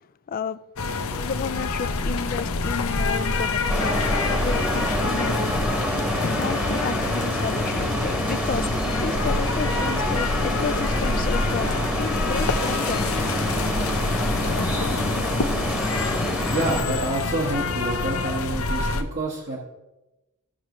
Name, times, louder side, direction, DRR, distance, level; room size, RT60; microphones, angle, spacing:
voice 1, 0.3-0.6 1.2-5.4 6.3-8.7 9.0-13.0, left 6 dB, 40° left, 0.3 m, -32 dB
sound 1, 0.8-19.0, left 3 dB, 65° left, 0.7 m, -26 dB
sound 2, 3.7-16.8, equal, 5° right, 1.1 m, -27 dB
voice 2, 16.5-19.6, right 2 dB, 50° right, 1.3 m, -28 dB
14.0 x 6.2 x 3.0 m
head